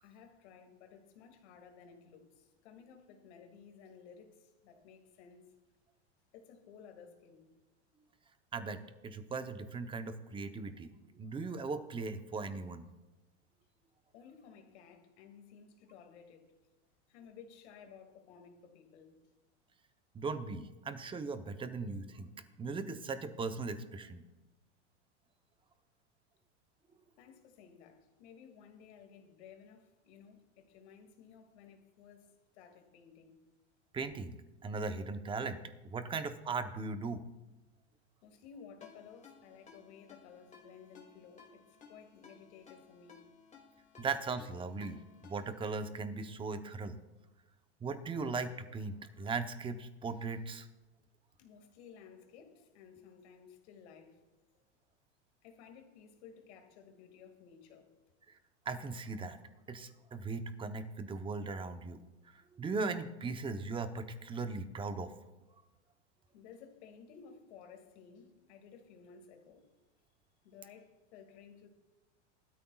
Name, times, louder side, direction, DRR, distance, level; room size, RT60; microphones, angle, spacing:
voice 1, 0.0-5.5 6.3-7.5 14.1-16.5 17.1-19.1 27.2-33.4 38.2-43.3 51.4-54.2 55.4-57.9 66.3-69.7 70.4-71.7, left 7 dB, 70° left, 5 dB, 2.3 m, -56 dB
voice 2, 8.5-12.8 20.1-22.3 22.6-24.2 33.9-35.6 35.8-37.2 44.0-45.0 45.2-47.0 47.8-50.7 58.3-58.4 58.7-59.4 59.7-62.0 62.2-65.1, right 4 dB, 15° right, 9 dB, 0.8 m, -38 dB
Ringtone, 38.8-45.7, left 5 dB, 20° left, 2.2 m, -59 dB
19.0 x 13.0 x 2.4 m, 1.1 s
supercardioid pair, 130°, 35 cm